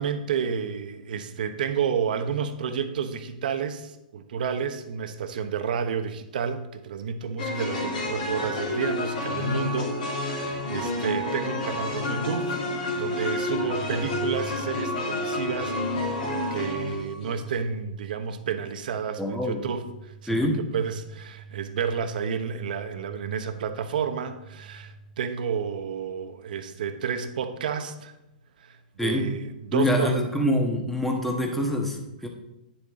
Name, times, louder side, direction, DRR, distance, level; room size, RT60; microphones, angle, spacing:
voice 1, 0.0-12.6 13.0-20.5 20.7-28.1 28.6-30.2, right 7 dB, 70° right, 8 dB, 1.1 m, -31 dB
sound 1, 7.4-17.6, left 2 dB, 65° left, 3.1 m, -29 dB
sound 2, 13.5-25.5, right 5 dB, 30° right, 1.4 m, -45 dB
voice 2, 19.2-19.6 20.3-20.6 29.0-29.3 29.7-32.3, left 1 dB, 5° left, 2 dB, 1.5 m, -25 dB
9.5 x 7.1 x 3.8 m, 0.91 s
hypercardioid pair, 130°, 5 cm